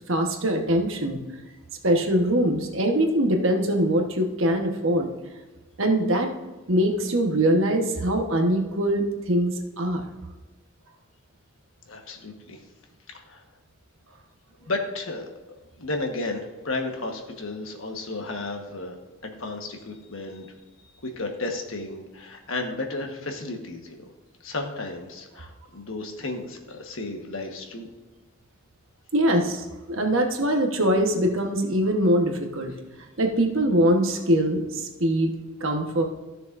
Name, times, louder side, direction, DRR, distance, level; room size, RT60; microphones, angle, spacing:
voice 1, 0.1-1.2 1.8-5.1 5.8-6.3 6.7-10.1 29.1-32.7 33.2-35.3 35.6-36.0, right 1 dB, 65° right, 3 dB, 1.2 m, -23 dB
voice 2, 11.9-12.6 13.1-13.4 14.6-15.3 15.8-19.0 19.2-20.5 21.2-24.0 24.4-27.9, left 2 dB, 65° left, 3 dB, 1.3 m, -33 dB
14.5 x 6.7 x 2.6 m, 1.2 s
head